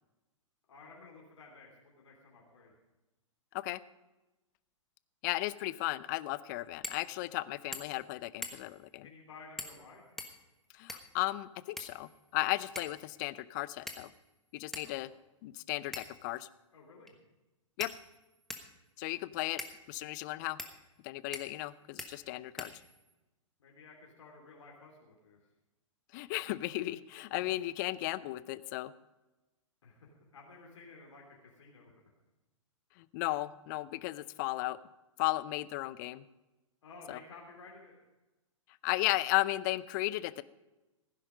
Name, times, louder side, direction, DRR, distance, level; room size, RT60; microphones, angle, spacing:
voice 1, 0.7-2.7 9.0-10.1 14.8-15.0 16.7-17.1 23.6-25.4 26.7-26.8 27.3-27.4 29.8-31.9 36.8-38.0, left 3 dB, 60° left, -1 dB, 3.1 m, -54 dB
voice 2, 5.2-9.1 10.7-14.1 14.5-15.1 15.4-16.5 17.8-17.9 19.0-19.6 19.9-20.6 21.0-22.7 26.1-28.9 33.0-34.8 35.2-36.2 37.1-37.2 38.8-40.4, left 18 dB, 35° left, 18 dB, 0.5 m, -35 dB
sound 1, 6.8-7.0 7.4-7.5 7.7-8.0 8.4-8.8 9.6-9.8 10.2-11.2 11.8-12.3 12.8-13.0 13.9-14.3 14.7-14.9 15.9-16.3 17.1-17.2 17.8-18.7 19.6-19.8 20.6-20.7 21.3-21.7 22.0-22.1 22.6-23.1, left 1 dB, ahead, 1.2 m, -43 dB
15.5 x 10.0 x 5.1 m, 1.1 s
figure-of-eight pair, 110°, 17 cm